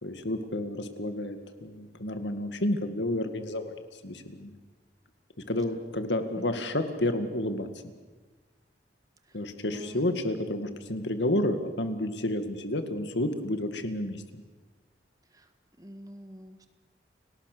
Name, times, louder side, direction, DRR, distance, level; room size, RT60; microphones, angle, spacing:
voice 1, 0.0-3.7 4.0-4.5 5.5-7.7 9.3-14.4, left 1 dB, 90° left, 8 dB, 2.1 m, -30 dB
voice 2, 9.2-10.0 15.3-15.5 15.8-16.7, equal, 20° right, 7 dB, 1.7 m, -46 dB
30.0 x 18.5 x 6.8 m, 1.3 s
head